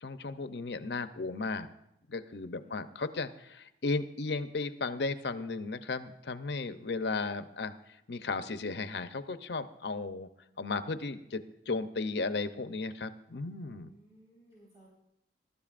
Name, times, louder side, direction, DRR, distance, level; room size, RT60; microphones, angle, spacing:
voice 1, 0.0-1.7 2.1-10.3 10.6-13.9, left 3 dB, 75° left, 10 dB, 0.7 m, -35 dB
voice 2, 2.6-2.9 13.8-14.9, right 1 dB, 20° right, -8 dB, 4.5 m, -59 dB
21.0 x 12.5 x 2.5 m, 0.85 s
head